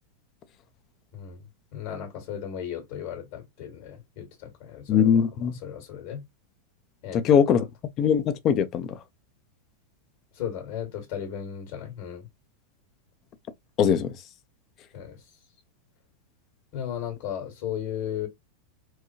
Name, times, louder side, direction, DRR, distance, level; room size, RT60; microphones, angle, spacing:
voice 1, 1.1-1.4 1.7-6.2 7.0-7.4 10.3-12.3 14.9-15.2 16.7-18.3, left 9 dB, 55° left, 1.7 m, -35 dB
voice 2, 4.9-5.5 7.1-7.7 8.0-9.0 13.8-14.1, left 8 dB, 40° left, 0.6 m, -21 dB
4.6 x 2.3 x 2.7 m
hypercardioid pair, 110°, 0 cm